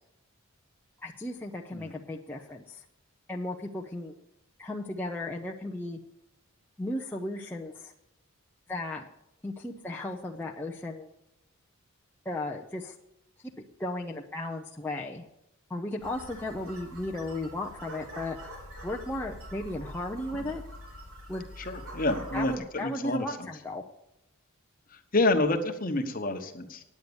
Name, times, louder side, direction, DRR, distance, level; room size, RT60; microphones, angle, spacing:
voice 1, 1.0-2.8 3.3-4.1 4.6-6.0 6.8-7.9 8.7-9.0 9.4-11.1 12.2-12.9 13.8-15.2 15.7-18.4 18.8-20.6 21.3-21.5 22.3-23.8, left 1 dB, 10° left, -2 dB, 0.5 m, -35 dB
sound 1, 16.0-22.6, equal, 80° right, 3.3 m, -44 dB
voice 2, 21.7-23.5 25.1-26.8, left 2 dB, 40° left, 6 dB, 1.1 m, -28 dB
9.4 x 9.4 x 7.0 m, 0.85 s
head